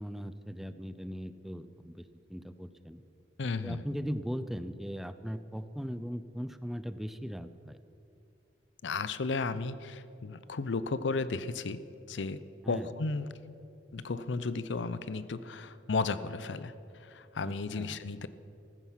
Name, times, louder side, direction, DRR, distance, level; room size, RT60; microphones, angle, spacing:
voice 1, 0.0-3.0 3.6-7.8 12.6-12.9 17.4-18.0, equal, ahead, 11 dB, 0.4 m, -39 dB
voice 2, 3.4-3.8 8.8-11.8 12.1-13.3 13.9-18.3, left 4 dB, 85° left, 15 dB, 0.6 m, -34 dB
14.5 x 14.0 x 5.8 m, 2.6 s
head